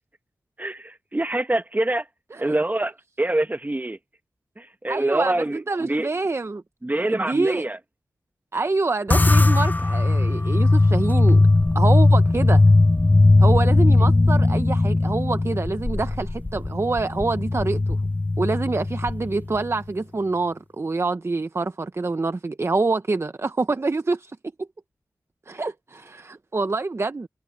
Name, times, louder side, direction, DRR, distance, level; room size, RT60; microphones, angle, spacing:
voice 1, 0.6-2.1 2.4-4.0 4.6-6.1 6.8-7.8, right 1 dB, 25° right, 1.7 m, -25 dB
voice 2, 4.9-6.6 7.1-7.6 8.5-11.4 11.7-12.6 13.4-18.0 18.4-24.7 25.5-27.3, right 3 dB, 40° right, 0.8 m, -26 dB
sound 1, 9.1-19.7, left 2 dB, 25° left, 0.6 m, -18 dB
cardioid pair, 45°, 7 cm